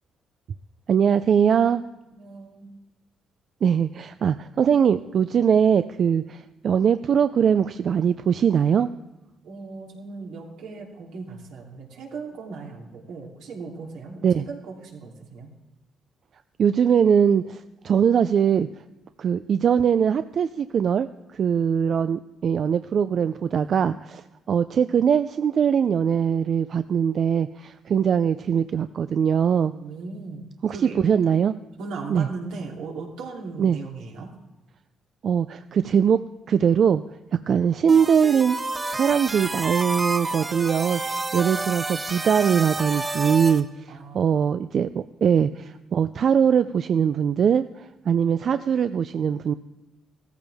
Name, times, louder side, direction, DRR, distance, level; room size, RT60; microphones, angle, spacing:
voice 1, 0.9-1.8 3.6-8.9 14.2-14.4 16.6-18.7 19.2-29.7 30.6-30.8 31.0-31.5 32.1-32.3 33.6-33.8 35.2-36.2 36.5-37.0 37.5-38.6 38.9-49.5, right 7 dB, 55° right, 11 dB, 0.4 m, -21 dB
voice 2, 2.1-2.7 9.4-15.5 23.5-23.7 29.7-31.0 31.8-34.3 43.9-44.4 45.2-45.3, right 4 dB, 85° right, -1 dB, 3.0 m, -38 dB
sound 1, 37.9-43.6, right 2 dB, 25° right, 1.2 m, -29 dB
16.0 x 14.0 x 3.5 m, 1.0 s
cardioid pair, 90°, 0 cm